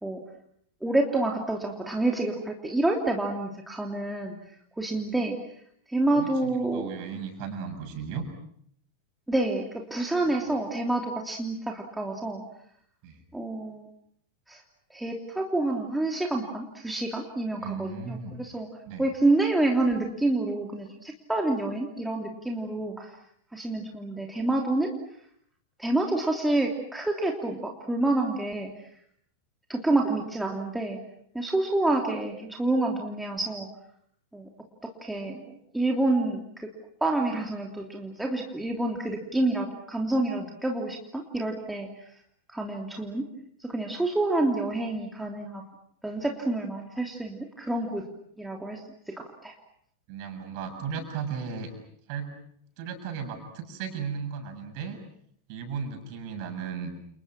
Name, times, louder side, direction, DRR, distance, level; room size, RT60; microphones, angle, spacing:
voice 1, 0.8-4.3 4.8-5.3 5.9-6.9 9.3-12.4 13.3-13.9 14.5-14.6 14.9-18.7 19.0-23.1 23.5-24.9 25.8-28.7 29.7-31.0 31.3-33.7 34.3-34.5 34.8-36.7 37.0-41.9 42.5-43.3 43.6-45.6 46.0-48.0 48.4-48.8 49.1-49.5, right 2 dB, 5° right, 1 dB, 3.1 m, -28 dB
voice 2, 6.1-8.2 13.0-13.2 17.6-18.3 18.9-19.0 50.1-51.7 52.1-52.3 52.8-55.0 55.5-57.0, right 6 dB, 45° right, 6 dB, 7.1 m, -35 dB
30.0 x 30.0 x 6.1 m, 0.68 s
figure-of-eight pair, 90°, 0 cm